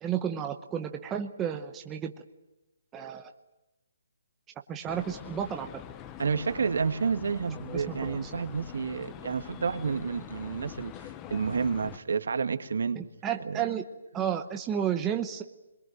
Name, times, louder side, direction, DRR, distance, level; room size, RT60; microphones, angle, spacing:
voice 1, 0.0-2.1 2.9-3.3 4.7-5.7 7.7-8.3 12.9-13.8 14.1-15.4, right 9 dB, 10° right, 5 dB, 0.9 m, -32 dB
sound 1, 4.9-12.0, left 10 dB, 15° left, 0.8 m, -44 dB
voice 2, 6.2-13.0 13.4-13.6, right 5 dB, 70° right, 8 dB, 2.2 m, -30 dB
25.5 x 22.5 x 9.2 m, 0.99 s
hypercardioid pair, 175°, 0 cm